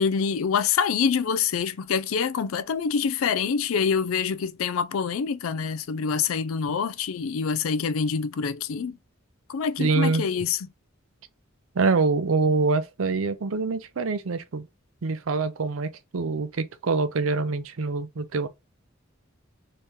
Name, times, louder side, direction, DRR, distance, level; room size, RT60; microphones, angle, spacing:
voice 1, 0.0-9.0 9.5-10.7, left 6 dB, 85° left, 0.4 m, -26 dB
voice 2, 9.8-10.2 11.7-14.7 15.0-18.5, right 4 dB, 80° right, 0.6 m, -25 dB
3.2 x 2.8 x 3.5 m
head